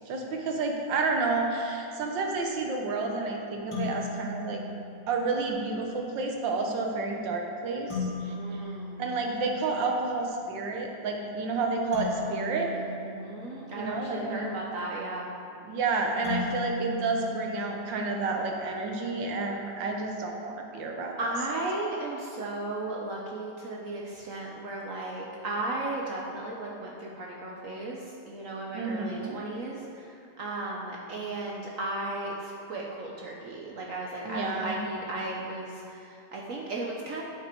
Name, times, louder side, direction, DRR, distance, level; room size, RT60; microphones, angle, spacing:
voice 1, 0.1-4.6 5.1-8.6 9.0-12.7 13.7-14.5 15.6-21.3 28.7-29.4 34.2-34.8, right 3 dB, 75° right, 2 dB, 1.6 m, -30 dB
sound 1, 3.7-5.4 7.9-9.9 11.9-14.1 16.2-18.3, left 3 dB, 55° left, 2.6 m, -37 dB
voice 2, 8.3-9.0 12.1-15.3 21.2-28.0 28.3-30.0 30.4-37.2, right 2 dB, 60° right, -2 dB, 0.9 m, -35 dB
9.7 x 5.9 x 4.4 m, 2.7 s
omnidirectional pair, 2.1 m